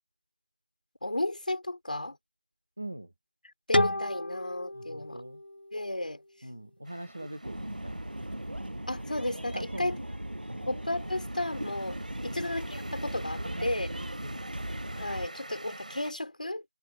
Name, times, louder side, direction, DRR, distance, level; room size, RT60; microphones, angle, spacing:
voice 1, 1.0-2.2 3.7-5.2 5.7-6.2 8.9-10.0 10.7-13.9 15.0-16.6, left 1 dB, 55° left, 4.7 m, -33 dB
voice 2, 2.8-3.1 4.7-5.4 6.4-8.2 9.5-10.2 10.5-10.7 12.2-12.4 13.4-14.6, right 1 dB, ahead, 0.3 m, -43 dB
Clean G harm, 3.7-6.6, left 1 dB, 75° left, 1.0 m, -31 dB
sound 1, 6.8-16.1, right 1 dB, 50° right, 5.7 m, -49 dB
sound 2, 7.4-15.3, right 1 dB, 85° right, 7.5 m, -38 dB
figure-of-eight pair, 175°, 5 cm